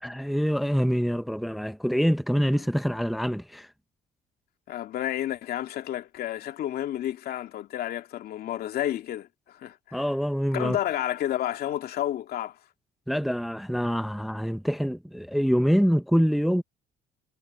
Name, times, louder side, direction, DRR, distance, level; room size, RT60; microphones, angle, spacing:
voice 1, 0.0-3.7 9.9-10.8 13.1-16.6, equal, ahead, 0.8 m, -25 dB
voice 2, 4.7-10.0 10.5-12.6, left 12 dB, 65° left, 2.5 m, -31 dB
cardioid pair, 110°, 17 cm